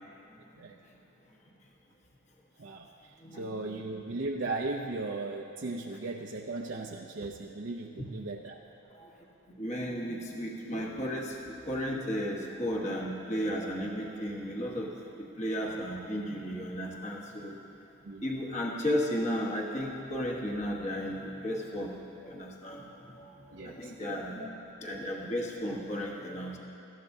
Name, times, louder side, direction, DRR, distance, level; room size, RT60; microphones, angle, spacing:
voice 1, 2.6-8.6 18.0-18.3 23.5-23.9 24.4-24.5, right 3 dB, 60° right, 1 dB, 0.5 m, -37 dB
voice 2, 3.2-3.8 8.0-8.1 8.9-9.1 9.6-14.9 15.2-17.6 18.2-24.5 24.8-26.6, equal, 35° left, -1 dB, 1.2 m, -34 dB
18.5 x 13.5 x 2.7 m, 3.0 s
head